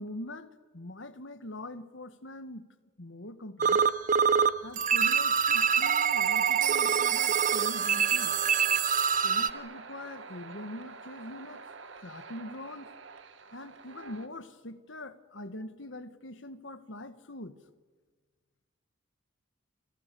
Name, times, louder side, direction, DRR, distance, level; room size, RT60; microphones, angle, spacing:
voice 1, 0.0-2.6 3.0-3.8 4.6-8.4 9.2-11.6 12.0-12.9 13.5-17.6, left 1 dB, 65° left, 1.5 m, -43 dB
sound 1, 3.6-4.5 4.8-9.5, right 7 dB, 40° right, 0.7 m, -25 dB
sound 2, 5.5-14.3, right 3 dB, 65° right, 1.5 m, -47 dB
28.5 x 26.0 x 6.9 m
head